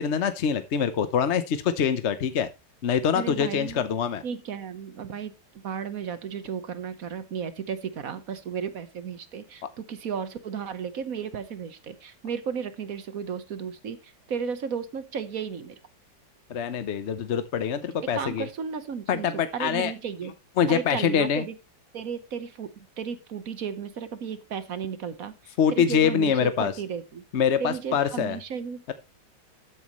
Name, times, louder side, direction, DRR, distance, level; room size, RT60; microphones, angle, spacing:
voice 1, 0.0-2.5 2.8-4.2 16.5-18.5 19.1-19.9 20.6-21.4 25.6-26.7 27.3-28.4 28.9-29.0, left 7 dB, 50° left, 11 dB, 0.8 m, -24 dB
voice 2, 3.1-3.9 4.2-5.3 5.6-15.8 18.1-19.3 19.5-20.3 20.7-21.5 21.9-27.2 27.6-28.8, right 7 dB, 55° right, 12 dB, 1.3 m, -34 dB
13.0 x 8.9 x 3.1 m, 0.26 s
omnidirectional pair, 1.9 m